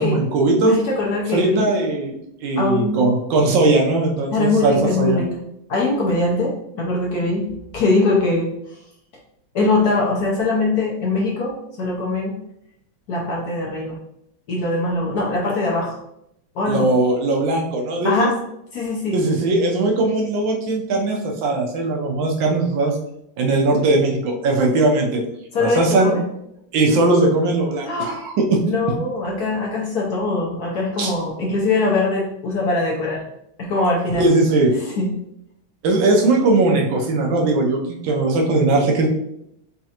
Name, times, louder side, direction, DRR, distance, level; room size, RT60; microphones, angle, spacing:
voice 1, 0.0-0.7 1.3-2.1 2.4-5.2 16.7-18.3 19.1-22.9 23.4-25.2 25.6-26.1 26.7-28.6 31.0-31.1 34.2-34.7 35.8-39.1, right 2 dB, 70° right, 1 dB, 1.5 m, -19 dB
voice 2, 0.6-1.7 2.6-3.0 4.3-5.3 5.7-7.5 7.7-8.8 9.5-11.5 11.8-12.4 13.1-14.0 14.5-16.0 16.5-16.9 18.0-18.3 18.7-19.2 25.5-26.2 27.8-28.2 28.6-33.2 33.6-34.3 34.9-35.1, left 2 dB, 60° left, -2 dB, 1.0 m, -22 dB
4.3 x 3.6 x 2.9 m, 0.77 s
omnidirectional pair, 2.4 m